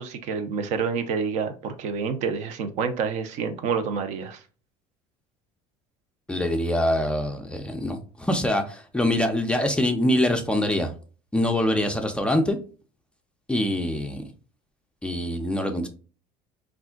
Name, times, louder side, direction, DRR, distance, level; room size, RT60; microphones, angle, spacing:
voice 1, 0.0-4.4, right 5 dB, 60° right, 0.5 m, -28 dB
voice 2, 6.3-10.9 11.3-12.6 13.5-14.2 15.0-15.9, left 1 dB, 10° left, 0.3 m, -24 dB
3.5 x 2.4 x 2.3 m
cardioid pair, 130°, 13 cm